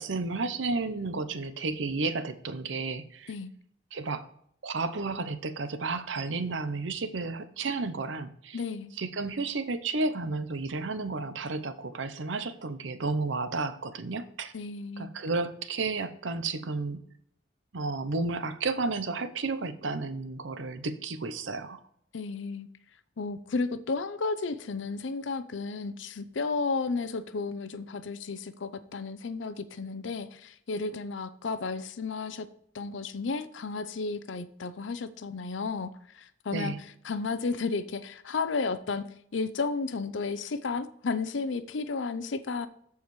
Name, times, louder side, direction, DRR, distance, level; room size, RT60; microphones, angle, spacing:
voice 1, 0.0-3.3 3.9-4.3 4.6-8.6 9.0-14.5 15.0-17.0 17.7-21.8 36.5-36.8, right 3 dB, 75° right, 0.7 m, -32 dB
voice 2, 8.5-8.9 14.5-15.1 22.1-22.7 23.2-32.5 32.7-36.7 37.0-39.0 39.3-42.7, left 4 dB, 80° left, 0.6 m, -33 dB
14.0 x 4.8 x 3.1 m
head